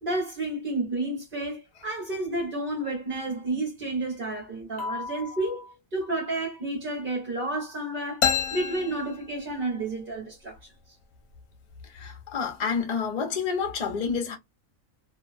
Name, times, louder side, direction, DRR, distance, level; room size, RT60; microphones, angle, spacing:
voice 1, 0.0-10.7, right 2 dB, 45° right, 1.0 m, -31 dB
voice 2, 4.8-5.5 11.8-14.4, left 6 dB, 40° left, 0.6 m, -30 dB
sound 1, 8.2-9.9, left 8 dB, 75° left, 1.0 m, -29 dB
2.5 x 2.1 x 2.3 m
omnidirectional pair, 1.5 m